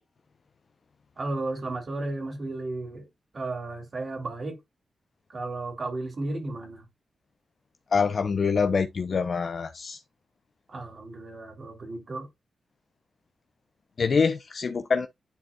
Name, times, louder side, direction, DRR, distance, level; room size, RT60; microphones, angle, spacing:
voice 1, 1.2-3.1 3.3-4.6 5.3-6.8 10.7-12.3, right 2 dB, 50° right, 2.6 m, -34 dB
voice 2, 7.9-10.0 14.0-15.1, left 5 dB, 55° left, 0.6 m, -25 dB
10.5 x 4.2 x 2.3 m
cardioid pair, 75°, 0 cm